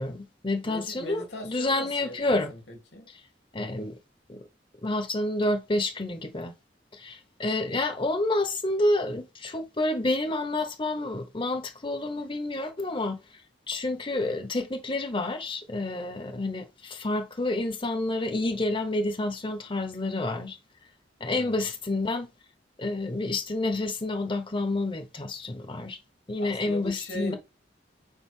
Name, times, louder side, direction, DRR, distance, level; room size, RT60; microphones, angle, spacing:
voice 1, 0.0-2.5 3.5-4.0 4.3-4.4 4.8-6.5 6.9-13.4 13.7-20.6 21.2-22.3 22.8-26.0 26.3-27.4, left 2 dB, 30° left, 0.9 m, -29 dB
voice 2, 0.6-3.1 21.3-21.7 26.4-27.4, left 1 dB, 90° left, 3.4 m, -40 dB
8.8 x 5.0 x 3.7 m
head